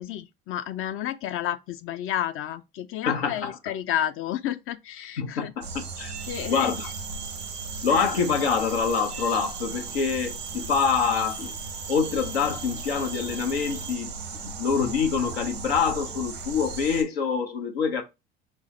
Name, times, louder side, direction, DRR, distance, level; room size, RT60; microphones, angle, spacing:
voice 1, 0.0-5.5 6.3-6.7 7.9-8.1, left 11 dB, 45° left, 0.5 m, -31 dB
voice 2, 3.1-3.5 5.2-6.1 6.5-6.9 7.8-11.5 11.9-14.1 14.4-18.0, left 6 dB, 85° left, 0.8 m, -26 dB
sound 1, 5.6-17.0, right 4 dB, 90° right, 1.0 m, -37 dB
sound 2, 5.9-13.9, right 5 dB, 20° right, 0.4 m, -42 dB
5.3 x 2.0 x 3.1 m
hypercardioid pair, 70°, 30 cm